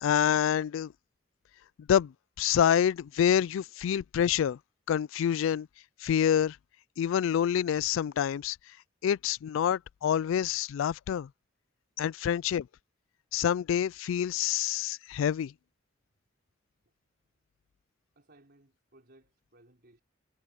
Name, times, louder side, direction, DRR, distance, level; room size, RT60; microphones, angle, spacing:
voice 1, 0.0-0.9 1.9-2.1 2.4-4.6 4.9-5.7 6.0-6.6 7.0-8.6 9.0-11.3 12.0-12.7 13.3-15.5, left 9 dB, 80° left, 0.3 m, -27 dB
voice 2, 18.2-20.0, right 1 dB, 55° right, 4.2 m, -61 dB
head